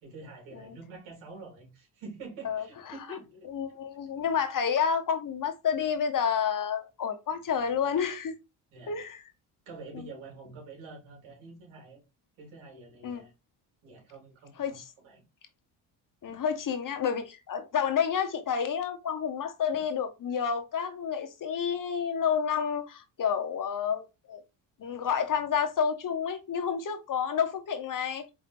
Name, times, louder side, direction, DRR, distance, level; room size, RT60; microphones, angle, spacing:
voice 1, 0.0-3.8 8.7-8.9 9.7-12.0 12.4-13.3 13.8-15.2 16.3-16.4 19.7-19.8, right 3 dB, 75° right, 2.8 m, -47 dB
voice 2, 3.5-8.4 8.9-9.2 9.9-10.0 13.0-13.2 14.6-14.8 16.2-24.4 24.8-28.3, left 7 dB, 45° left, 0.9 m, -29 dB
4.4 x 3.7 x 2.5 m
supercardioid pair, 75°, 47 cm